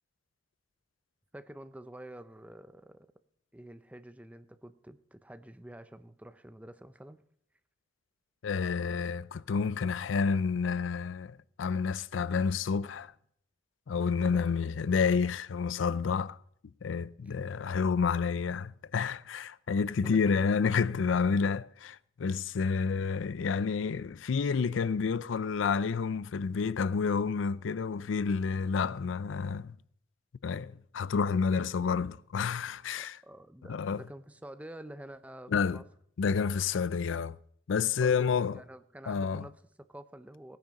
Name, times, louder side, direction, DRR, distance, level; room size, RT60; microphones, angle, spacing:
voice 1, 1.3-3.1 3.5-7.2 14.2-14.5 17.2-17.3 20.0-20.5 21.3-21.6 31.6-31.7 32.9-35.8 37.9-40.6, right 1 dB, 10° right, 0.6 m, -48 dB
voice 2, 8.4-13.1 13.9-16.4 16.8-21.6 22.2-29.7 30.4-33.2 33.7-34.0 35.5-35.8 36.2-37.4 37.7-38.6 39.1-39.5, left 5 dB, 90° left, 0.4 m, -29 dB
17.5 x 9.3 x 5.2 m
head